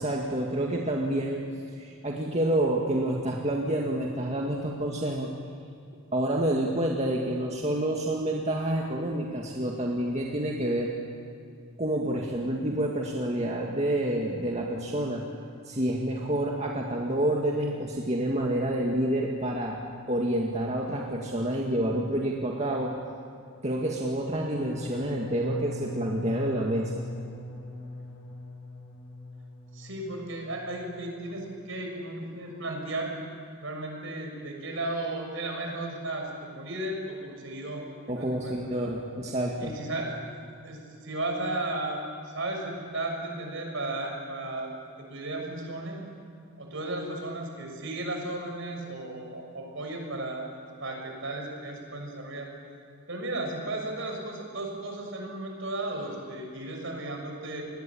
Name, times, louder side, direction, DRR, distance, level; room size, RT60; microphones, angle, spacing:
voice 1, 0.0-1.4 1.7-5.3 6.1-10.9 11.8-15.2 15.6-19.8 20.1-22.9 23.6-26.9 38.1-39.7, right 1 dB, 30° right, -1 dB, 2.1 m, -28 dB
sound 1, 24.3-30.2 30.5-31.0 31.3-31.7, left 2 dB, 90° left, 7.6 m, -40 dB
voice 2, 29.7-33.1 33.6-37.8 38.1-38.9 39.6-40.2 40.6-44.7 45.1-46.0 46.6-50.5 50.8-52.5 53.1-57.6, right 2 dB, 60° right, 2 dB, 6.5 m, -35 dB
29.5 x 21.0 x 8.8 m, 2.4 s
head